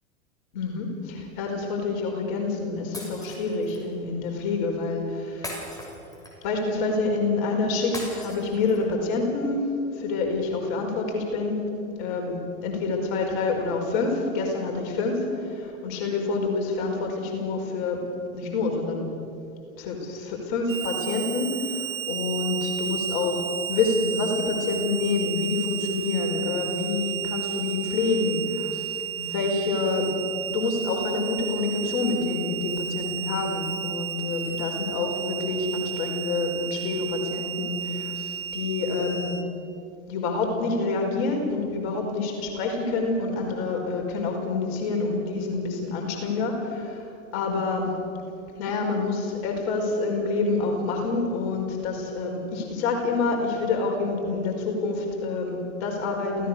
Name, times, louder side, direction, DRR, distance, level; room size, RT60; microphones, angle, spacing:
voice 1, 0.5-5.7 6.4-11.6 12.0-18.0 18.3-19.1 19.8-30.2 30.5-39.4 40.1-47.9 48.6-56.5, left 3 dB, 50° left, 1 dB, 5.1 m, -27 dB
Shatter, 2.9-3.8 5.4-6.5 7.9-8.9, left 1 dB, 10° left, 6.8 m, -39 dB
Harmonica, 20.7-39.4, right 10 dB, 70° right, 2.2 m, -33 dB
28.0 x 17.0 x 6.8 m, 2.6 s
figure-of-eight pair, 95°, 40 cm